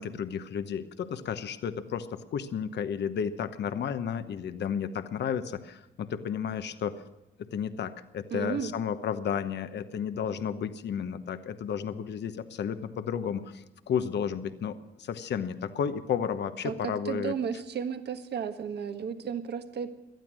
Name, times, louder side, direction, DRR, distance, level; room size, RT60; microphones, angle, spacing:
voice 1, 0.0-6.9 7.5-17.3, left 7 dB, 60° left, 10 dB, 1.0 m, -32 dB
voice 2, 8.3-8.7 16.6-16.7 17.0-19.9, right 7 dB, 55° right, 7 dB, 1.5 m, -33 dB
18.5 x 12.5 x 6.3 m, 0.94 s
cardioid pair, 90°, 20 cm